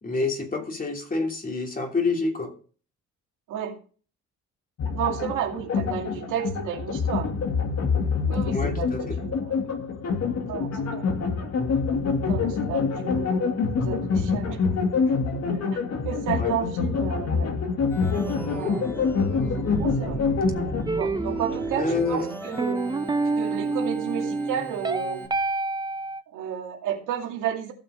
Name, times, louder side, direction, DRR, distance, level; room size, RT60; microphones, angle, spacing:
voice 1, 0.0-2.5 8.5-9.2 16.4-16.5 21.8-22.3, left 3 dB, 30° left, 2 dB, 3.0 m, -27 dB
sound 1, 4.8-20.8, left 5 dB, 55° left, 2.3 m, -26 dB
voice 2, 4.9-7.3 8.3-9.6 10.4-11.1 12.2-15.1 15.7-15.8 16.0-17.5 18.5-18.9 19.8-20.2 20.9-25.3 26.3-27.7, right 9 dB, 90° right, 2 dB, 2.4 m, -32 dB
Organ, 17.9-25.3, right 1 dB, 5° left, 3.1 m, -35 dB
sound 2, 20.9-26.2, right 3 dB, 15° right, 0.7 m, -28 dB
15.0 x 6.2 x 5.1 m, 0.40 s
cardioid pair, 90°, 30 cm